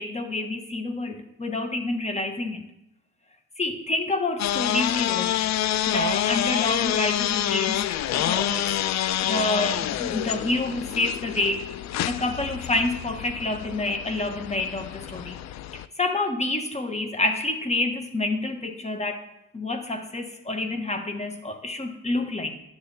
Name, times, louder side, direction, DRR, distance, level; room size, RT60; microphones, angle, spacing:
voice 1, 0.0-2.7 3.6-5.5 5.9-8.8 9.2-11.6 12.0-15.4 16.0-19.3 19.5-22.5, left 2 dB, 20° left, 6 dB, 1.2 m, -28 dB
sound 1, 4.4-15.9, left 12 dB, 65° left, 0.5 m, -27 dB
10.5 x 6.6 x 4.1 m, 0.87 s
cardioid pair, 90°, 30 cm